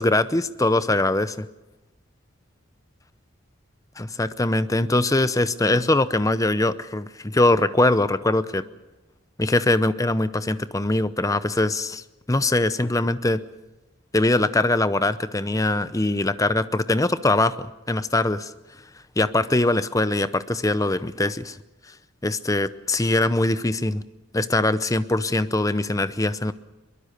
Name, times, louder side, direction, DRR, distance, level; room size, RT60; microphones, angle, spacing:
voice 1, 0.0-1.5 4.0-8.6 9.4-13.4 14.1-18.5 19.2-21.6 22.2-24.0 24.3-26.5, left 2 dB, 15° left, 13 dB, 0.7 m, -22 dB
22.5 x 22.0 x 6.7 m, 1.0 s
head